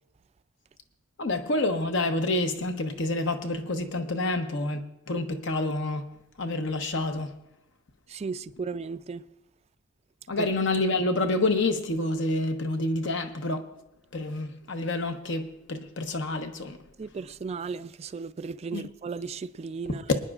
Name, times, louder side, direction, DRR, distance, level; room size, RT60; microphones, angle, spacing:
voice 1, 1.2-7.3 10.3-13.6 14.1-16.8 18.7-18.9 20.1-20.2, left 2 dB, 65° left, 1.0 m, -28 dB
voice 2, 8.1-9.3 10.4-10.5 17.0-20.0, right 5 dB, 30° right, 0.3 m, -35 dB
26.0 x 9.7 x 2.4 m
head